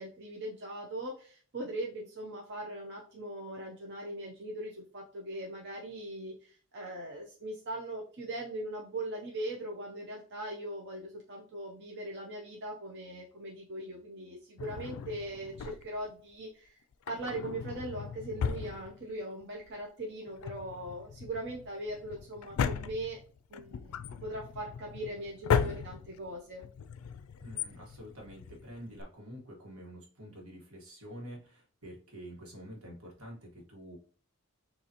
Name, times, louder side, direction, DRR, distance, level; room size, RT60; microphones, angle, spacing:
voice 1, 0.0-16.8 17.1-23.2 23.5-26.7, right 1 dB, 55° right, -1 dB, 0.7 m, -40 dB
Drawer open or close, 14.6-16.1 16.9-19.4 19.7-19.8 20.3-29.0, left 7 dB, 80° left, 0.3 m, -36 dB
voice 2, 27.4-34.0, equal, 80° right, -1 dB, 1.5 m, -47 dB
6.6 x 2.7 x 2.9 m, 0.42 s
head